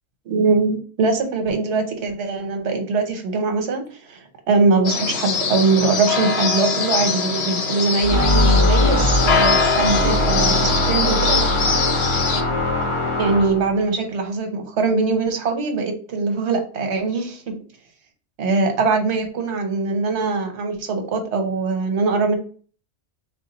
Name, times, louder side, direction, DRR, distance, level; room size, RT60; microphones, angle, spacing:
voice 1, 0.3-11.5 13.2-17.5 18.4-22.4, right 3 dB, 70° right, 5 dB, 1.1 m, -22 dB
sound 1, 4.8-12.4, left 5 dB, 65° left, 0.8 m, -23 dB
sound 2, 8.0-13.7, left 1 dB, 35° left, 0.6 m, -20 dB
3.5 x 2.3 x 3.8 m, 0.42 s
omnidirectional pair, 1.2 m